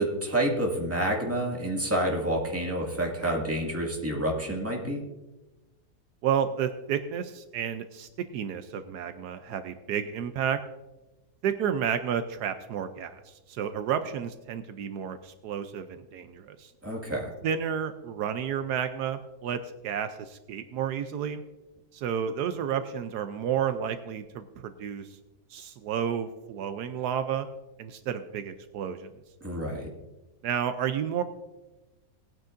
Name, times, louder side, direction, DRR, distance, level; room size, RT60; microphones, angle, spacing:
voice 1, 0.0-5.0 16.8-17.3 29.4-29.9, right 1 dB, 10° right, -2 dB, 1.9 m, -28 dB
voice 2, 6.2-10.6 11.4-16.7 17.4-21.4 21.9-25.1 25.5-27.5 27.8-29.1 30.4-31.2, right 8 dB, 80° right, 10 dB, 1.2 m, -31 dB
19.0 x 9.1 x 2.6 m, 1.1 s
omnidirectional pair, 1.7 m